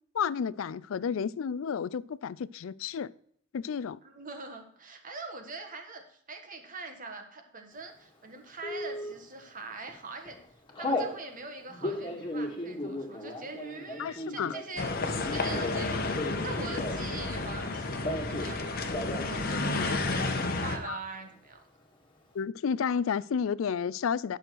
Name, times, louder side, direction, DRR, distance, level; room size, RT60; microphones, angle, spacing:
voice 1, 0.1-3.1 3.5-4.0 14.0-14.6 19.8-20.0 20.8-21.0 22.3-24.4, left 7 dB, 70° left, 0.4 m, -31 dB
voice 2, 4.0-10.4 10.8-14.9 15.3-21.6, right 3 dB, 40° right, 1.5 m, -43 dB
Telephone, 8.6-9.1 9.7-10.0 10.2-11.1 11.7-17.2 17.4-18.5 18.8-19.3 19.6-19.7 19.9-20.5, left 1 dB, 25° left, 1.8 m, -35 dB
sound 1, 14.8-20.8, left 3 dB, 45° left, 1.1 m, -31 dB
10.0 x 6.4 x 4.6 m
head